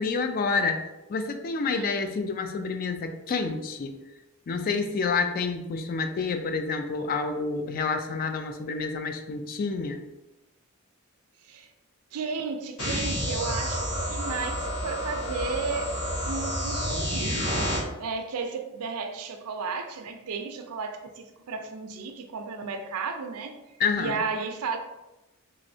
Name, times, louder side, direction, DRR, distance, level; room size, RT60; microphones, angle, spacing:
voice 1, 0.0-4.0 4.5-10.0 23.8-24.2, left 4 dB, 40° left, 7 dB, 0.3 m, -28 dB
voice 2, 12.1-15.9 16.2-17.5 18.0-23.6 24.0-24.8, right 4 dB, 75° right, 6 dB, 0.4 m, -33 dB
sound 1, 12.8-17.8, equal, 70° left, 1.2 m, -29 dB
3.5 x 3.1 x 2.6 m, 0.98 s
head